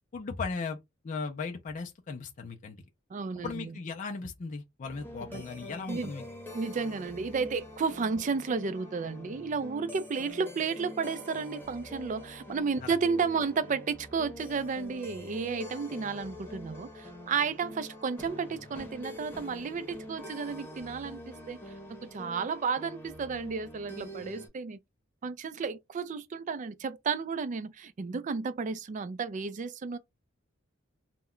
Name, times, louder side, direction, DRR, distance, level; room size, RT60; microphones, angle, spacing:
voice 1, 0.1-0.8 1.0-2.8 3.4-6.2 12.8-13.0, left 4 dB, 40° left, 0.4 m, -37 dB
voice 2, 3.1-3.7 5.3-5.4 5.9-6.1 6.5-21.2 21.5-21.6 21.9-24.8 25.2-30.0, right 5 dB, 40° right, 0.3 m, -32 dB
sound 1, 4.8-24.5, left 1 dB, 10° left, 0.8 m, -45 dB
2.2 x 2.1 x 3.6 m
head